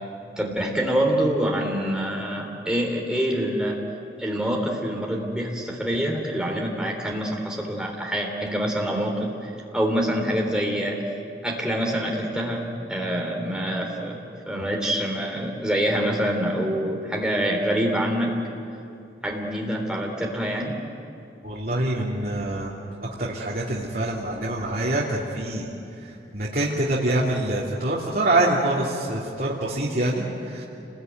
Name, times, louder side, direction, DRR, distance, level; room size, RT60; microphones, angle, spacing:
voice 1, 0.4-3.8 4.2-11.0 11.4-14.2 14.5-18.3 19.2-20.8, equal, 5° right, 0 dB, 3.4 m, -26 dB
voice 2, 21.4-22.7 23.2-30.6, right 1 dB, 55° right, -5 dB, 3.0 m, -25 dB
28.0 x 21.0 x 9.4 m, 2.7 s
head